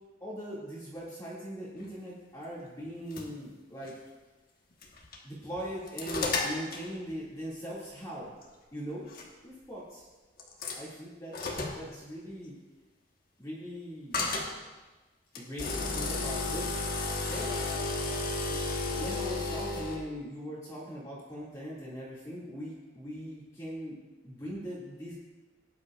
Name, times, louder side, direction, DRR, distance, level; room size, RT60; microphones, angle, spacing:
voice 1, 0.2-4.0 5.2-8.3 8.7-9.1 9.4-10.1 10.7-12.6 13.4-14.3 15.3-16.7 17.2-17.9 18.4-24.0 24.2-25.1, equal, 15° left, -8 dB, 2.2 m, -40 dB
sound 1, 2.8-3.3 3.8-3.9 4.8-5.2 5.6-6.9 8.4-8.5 9.1-9.2 10.4-10.8 11.3-11.8 14.1-14.5 15.3-20.0, left 3 dB, 45° left, 1.4 m, -32 dB
17.5 x 9.9 x 2.4 m, 1.2 s
head